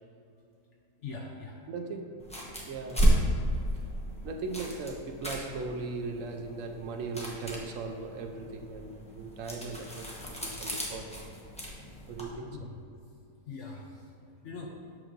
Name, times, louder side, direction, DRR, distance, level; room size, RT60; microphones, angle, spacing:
voice 1, 1.0-1.6 11.6-12.1 12.5-12.6 13.5-14.7, left 4 dB, 65° left, 0 dB, 0.7 m, -43 dB
voice 2, 1.7-2.2 2.7-3.1 3.7-3.9 4.2-11.2 12.1-12.7, right 3 dB, 70° right, 4 dB, 0.8 m, -38 dB
sound 1, 2.2-12.3, right 1 dB, 5° left, 0.5 m, -33 dB
7.7 x 6.1 x 2.5 m, 2.6 s
omnidirectional pair, 1.7 m